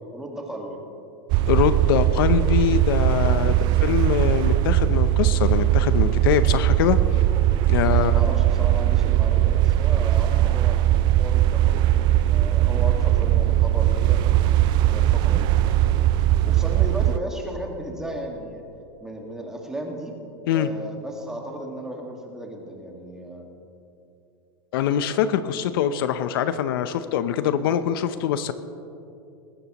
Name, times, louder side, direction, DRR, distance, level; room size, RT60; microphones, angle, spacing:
voice 1, 0.1-0.9 3.3-3.6 7.8-10.8 11.1-14.4 14.8-15.8 16.4-18.6 19.0-20.1 20.5-23.4 27.6-27.8, right 1 dB, 5° right, 1 dB, 1.8 m, -35 dB
sound 1, 1.3-17.2, right 13 dB, 35° right, 0.4 m, -20 dB
voice 2, 1.5-3.6 3.8-7.0 7.7-8.1 20.5-20.7 24.7-28.5, left 9 dB, 70° left, 12 dB, 0.7 m, -23 dB
20.0 x 15.0 x 3.0 m, 2.7 s
supercardioid pair, 145°, 13 cm